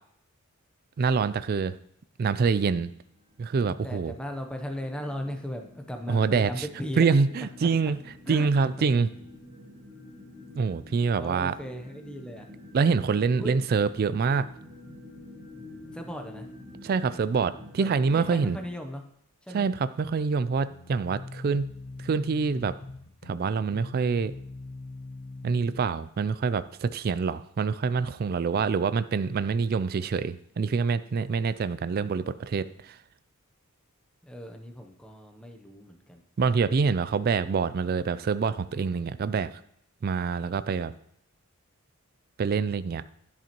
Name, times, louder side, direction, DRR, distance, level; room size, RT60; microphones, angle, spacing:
voice 1, 1.0-1.7 2.2-2.9 3.4-4.1 6.1-6.7 7.0-8.0 8.3-9.1 10.5-11.6 12.7-14.5 16.8-18.6 19.5-21.7 22.0-22.8 23.3-24.3 25.4-32.9 36.4-39.5 40.0-40.9 42.4-43.0, right 5 dB, 45° right, 14 dB, 0.3 m, -26 dB
sound 1, 3.0-18.7, left 1 dB, 15° right, 1.4 m, -48 dB
voice 2, 3.6-7.1 8.3-8.5 8.8-8.9 11.2-12.4 13.4-13.5 15.9-16.5 17.8-19.0 19.4-19.6 34.2-36.2, equal, 5° left, 4 dB, 0.7 m, -37 dB
sound 2, 20.5-25.9, left 2 dB, 90° left, 0.9 m, -42 dB
10.5 x 7.3 x 3.0 m, 0.71 s
head